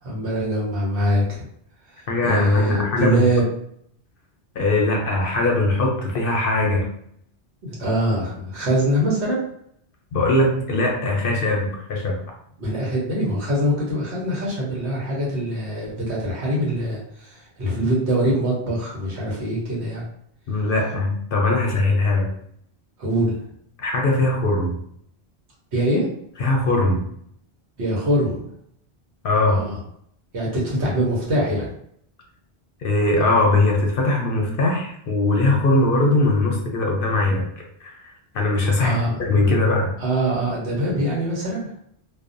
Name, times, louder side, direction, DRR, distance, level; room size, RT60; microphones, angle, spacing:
voice 1, 0.0-1.4 1.9-3.4 7.6-9.4 12.6-20.0 23.0-23.4 25.7-26.1 27.8-28.4 29.5-29.8 30.3-31.7 38.8-39.2 40.0-41.7, equal, 80° right, -4 dB, 1.2 m, -23 dB
voice 2, 2.1-3.3 4.6-6.9 10.1-12.2 20.5-22.3 23.8-24.8 26.4-27.1 29.2-29.6 32.8-37.5 37.8-39.9, left 2 dB, 65° left, 0 dB, 0.7 m, -21 dB
2.6 x 2.1 x 2.5 m, 0.69 s
omnidirectional pair, 1.1 m